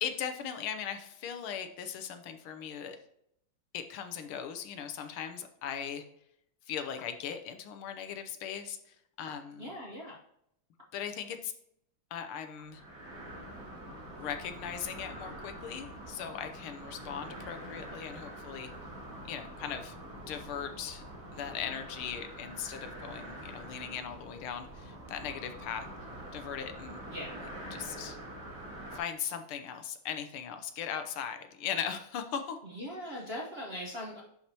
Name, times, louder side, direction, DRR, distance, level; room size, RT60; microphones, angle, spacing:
voice 1, 0.0-3.0 3.7-6.0 6.7-9.7 10.9-11.5 12.1-12.8 14.2-18.7 19.3-21.0 21.3-25.9 26.3-27.0 27.7-28.2 28.9-32.6, left 8 dB, 80° left, 8 dB, 1.6 m, -39 dB
voice 2, 9.6-10.2 27.1-27.3 32.6-34.2, equal, 35° right, -5 dB, 1.0 m, -40 dB
sound 1, 12.6-29.0, right 1 dB, 90° right, 4.1 m, -45 dB
11.0 x 4.7 x 2.9 m, 0.74 s
omnidirectional pair, 2.4 m